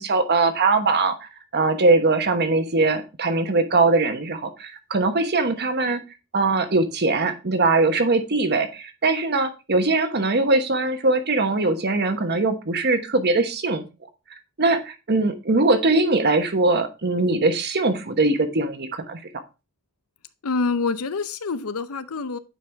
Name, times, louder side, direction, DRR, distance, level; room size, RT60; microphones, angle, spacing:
voice 1, 0.0-6.0 6.3-13.8 14.6-19.2, right 3 dB, 50° right, 1.1 m, -21 dB
voice 2, 20.4-22.4, left 4 dB, 90° left, 0.7 m, -26 dB
9.3 x 4.7 x 3.4 m
head